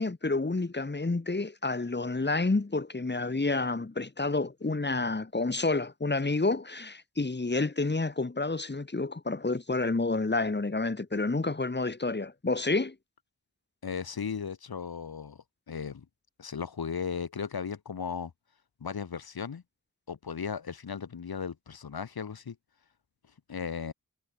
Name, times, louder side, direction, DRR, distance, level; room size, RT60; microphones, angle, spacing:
voice 1, 0.0-12.9, left 3 dB, 30° left, 4.5 m, -29 dB
voice 2, 13.8-16.1 16.4-18.3 18.8-19.6 20.1-22.6 23.5-23.9, left 6 dB, 85° left, 4.2 m, -36 dB
wide cardioid pair, 130°, 36 cm